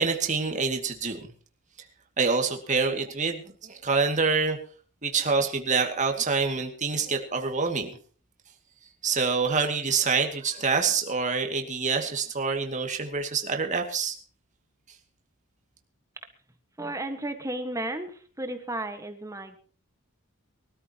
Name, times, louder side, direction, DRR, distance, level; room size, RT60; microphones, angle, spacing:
voice 1, 0.0-1.3 2.2-4.6 5.0-8.0 9.0-14.2, right 4 dB, 35° right, 3 dB, 2.3 m, -26 dB
voice 2, 16.8-19.6, right 1 dB, 15° right, 7 dB, 1.6 m, -33 dB
23.5 x 13.5 x 3.0 m, 0.42 s
head